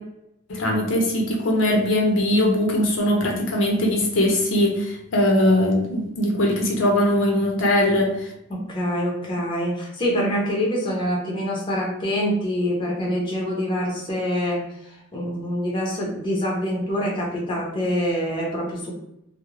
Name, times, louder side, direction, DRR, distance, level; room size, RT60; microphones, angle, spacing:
voice 1, 0.5-8.1, left 1 dB, 70° left, 0 dB, 0.6 m, -20 dB
voice 2, 8.5-14.6 15.1-18.9, equal, 25° left, -3 dB, 0.6 m, -25 dB
2.4 x 2.0 x 3.0 m, 0.80 s
head